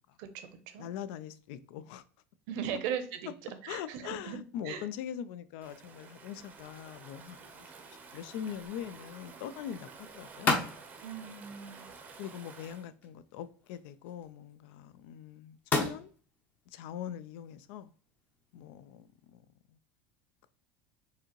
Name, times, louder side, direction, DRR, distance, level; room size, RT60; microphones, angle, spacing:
voice 1, 0.8-2.0 3.7-10.7 12.2-16.1 16.7-17.9 18.5-19.4, left 9 dB, 65° left, 0.3 m, -42 dB
voice 2, 2.5-3.3 3.6-4.4 4.6-4.9 11.0-11.9, right 8 dB, 60° right, 0.7 m, -38 dB
Stream / Ocean, 5.6-12.9, right 4 dB, 25° right, 0.6 m, -51 dB
sound 1, 6.5-19.3, left 3 dB, 25° left, 0.7 m, -40 dB
4.7 x 2.7 x 3.0 m
supercardioid pair, 150°, 7 cm